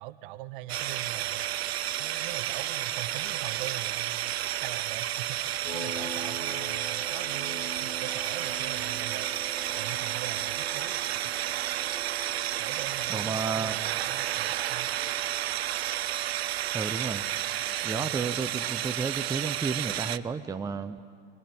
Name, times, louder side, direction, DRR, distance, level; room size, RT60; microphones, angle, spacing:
voice 1, 0.0-1.5 2.0-9.3 9.8-10.9 11.2-11.5 12.6-14.9 17.9-18.2, right 15 dB, 50° right, 14 dB, 1.1 m, -42 dB
sound 1, 0.7-20.2, right 13 dB, 70° right, 0.7 m, -31 dB
sound 2, 5.6-16.0, left 1 dB, 55° left, 5.2 m, -45 dB
voice 2, 13.1-13.8 16.7-17.2 17.8-21.0, right 5 dB, 10° right, 8 dB, 0.7 m, -32 dB
22.5 x 21.5 x 9.2 m, 2.1 s
figure-of-eight pair, 95°, 33 cm